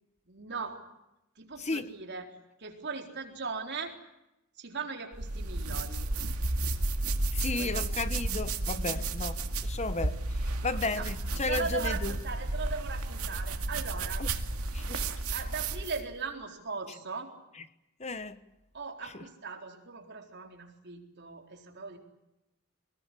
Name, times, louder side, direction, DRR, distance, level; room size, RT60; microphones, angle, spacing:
voice 1, 0.3-0.9 1.4-3.9 4.6-6.1 7.5-7.8 8.9-9.1 10.7-11.0 11.5-14.2 14.8-14.9 15.3-17.3 18.7-22.0, right 4 dB, 50° right, 4.1 m, -39 dB
sound 1, 5.1-16.1, right 2 dB, 85° right, 2.1 m, -32 dB
voice 2, 7.3-12.2 14.2-14.3 14.7-15.0 17.5-17.6 18.0-18.4 19.0-19.2, left 3 dB, 30° left, 1.1 m, -34 dB
24.0 x 20.0 x 9.9 m
head